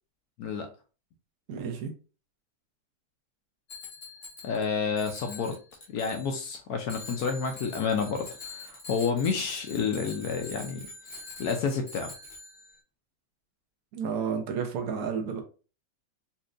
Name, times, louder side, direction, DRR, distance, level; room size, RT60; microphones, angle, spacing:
voice 1, 1.5-1.9 13.9-15.4, right 6 dB, 60° right, 4 dB, 1.1 m, -31 dB
Bicycle bell, 3.7-4.6 5.0-6.6 6.9-12.8, left 3 dB, 40° left, 0.7 m, -44 dB
voice 2, 4.4-5.6 5.9-10.9 11.4-12.1, left 5 dB, 70° left, 5 dB, 1.0 m, -29 dB
4.2 x 2.6 x 2.5 m, 0.34 s
omnidirectional pair, 2.0 m